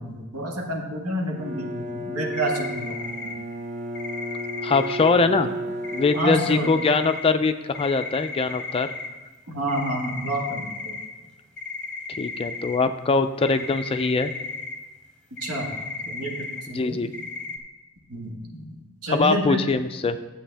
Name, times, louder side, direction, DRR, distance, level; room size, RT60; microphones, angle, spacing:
voice 1, 0.0-2.9 3.2-3.3 6.1-6.7 9.5-11.0 15.4-15.7 16.0-17.0 18.1-19.6, right 1 dB, 80° right, 0 dB, 1.5 m, -29 dB
Bowed string instrument, 1.3-6.8, right 1 dB, 35° right, 0.7 m, -33 dB
sound 1, 2.3-3.3 3.9-5.2 5.8-7.2 7.7-9.1 9.7-11.0 11.6-12.8 13.4-14.7 15.4-16.6 17.1-17.6, left 3 dB, 5° left, 1.0 m, -35 dB
voice 2, 4.6-5.5 5.9-8.9 12.2-14.3 16.7-17.1 19.1-20.2, left 4 dB, 25° left, 9 dB, 0.3 m, -22 dB
11.0 x 7.8 x 3.4 m, 1.2 s
head